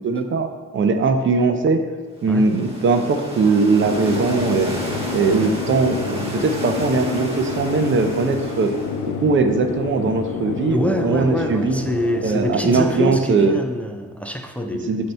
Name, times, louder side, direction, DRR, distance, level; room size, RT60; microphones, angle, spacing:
voice 1, 0.0-1.8 2.2-4.8 5.1-8.7 9.2-11.8 12.2-13.5 14.9-15.1, right 4 dB, 40° right, 7 dB, 0.6 m, -20 dB
sound 1, 2.1-9.2, right 1 dB, 20° right, 1.4 m, -33 dB
sound 2, 3.8-13.3, left 6 dB, 85° left, 0.6 m, -29 dB
voice 2, 10.7-15.1, equal, 5° left, 4 dB, 0.5 m, -25 dB
7.5 x 2.8 x 5.5 m, 1.5 s
cardioid pair, 90°, 30 cm